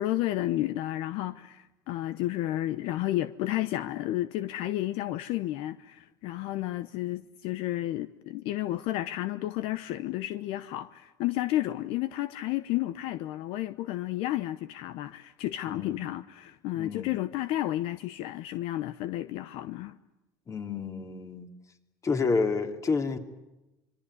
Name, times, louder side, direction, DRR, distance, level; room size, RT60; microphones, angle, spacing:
voice 1, 0.0-20.0, left 15 dB, 70° left, 0.9 m, -32 dB
voice 2, 15.7-16.0 16.7-17.1 20.5-21.5 22.0-23.2, left 4 dB, 35° left, 2.9 m, -29 dB
26.0 x 22.5 x 9.7 m
supercardioid pair, 90°, 10 cm